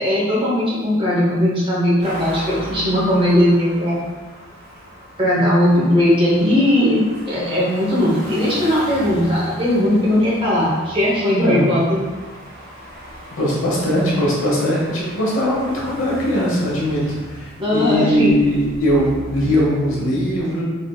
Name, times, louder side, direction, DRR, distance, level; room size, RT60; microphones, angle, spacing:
voice 1, 0.0-4.0 5.2-12.0 17.6-18.4, left 1 dB, 25° right, -6 dB, 0.9 m, -18 dB
sound 1, 2.0-20.1, equal, 55° right, 1.2 m, -37 dB
voice 2, 13.3-20.6, equal, 70° left, -4 dB, 1.0 m, -20 dB
3.4 x 3.4 x 2.3 m, 1.3 s
head